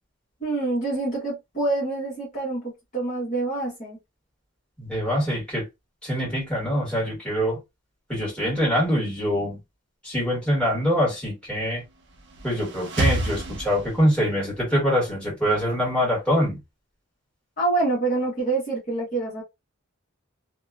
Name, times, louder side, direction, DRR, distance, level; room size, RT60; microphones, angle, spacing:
voice 1, 0.4-4.0 17.6-19.4, right 2 dB, 35° left, 1.1 m, -26 dB
voice 2, 4.8-5.7 6.0-7.6 8.1-9.6 10.0-11.8 12.4-16.6, equal, 5° left, 1.5 m, -24 dB
sound 1, 12.0-14.4, right 2 dB, 55° right, 0.6 m, -29 dB
2.7 x 2.2 x 2.4 m
head